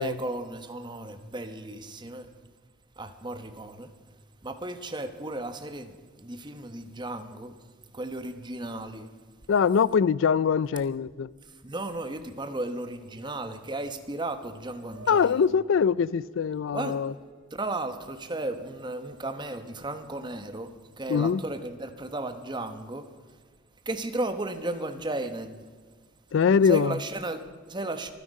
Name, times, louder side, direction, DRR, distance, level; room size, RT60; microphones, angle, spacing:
voice 1, 0.0-2.3 3.0-3.9 4.4-7.5 7.9-9.1 11.6-15.4 16.7-17.0 17.5-20.7 21.0-23.1 23.9-25.7 26.6-28.1, right 2 dB, 20° right, 1.0 m, -34 dB
voice 2, 9.5-11.3 15.1-17.1 21.1-21.4 26.3-27.0, left 6 dB, 70° left, 0.4 m, -23 dB
sound 1, 14.9-21.4, right 3 dB, 80° right, 2.9 m, -56 dB
24.5 x 10.0 x 5.4 m
head